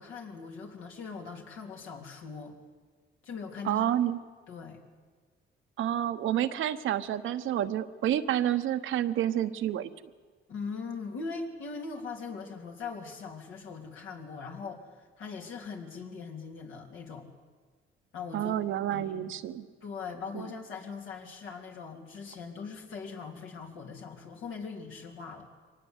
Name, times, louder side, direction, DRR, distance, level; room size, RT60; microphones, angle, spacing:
voice 1, 0.0-2.6 3.2-3.9 4.5-4.8 10.5-17.3 18.1-18.5 18.9-19.3 19.8-25.5, left 5 dB, 80° left, 1 dB, 3.5 m, -41 dB
voice 2, 3.6-4.2 5.8-9.9 18.3-19.7 20.3-20.5, right 11 dB, 80° right, 10 dB, 1.1 m, -29 dB
23.5 x 19.0 x 8.2 m, 1.4 s
cardioid pair, 90°, 20 cm